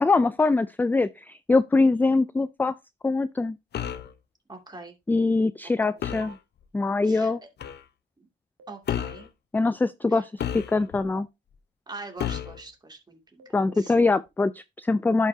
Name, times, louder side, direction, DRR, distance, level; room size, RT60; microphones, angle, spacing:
voice 1, 0.0-2.7 3.0-3.6 5.1-6.4 6.7-7.4 9.5-11.3 13.5-15.3, left 3 dB, 10° left, 0.3 m, -23 dB
sound 1, 3.7-4.1 6.0-6.4 7.6-7.8 8.9-9.3 10.4-11.0 12.2-12.6, left 9 dB, 60° left, 0.8 m, -31 dB
voice 2, 4.5-4.9 5.9-6.0 7.1-7.5 8.2-8.3 8.7-9.3 10.1-10.2 11.9-14.1, right 3 dB, 20° right, 2.4 m, -43 dB
sound 2, 6.2-6.4 8.6-8.8 11.0-11.2 13.4-13.8, right 6 dB, 75° right, 1.6 m, -47 dB
11.0 x 5.6 x 2.7 m
cardioid pair, 90°, 20 cm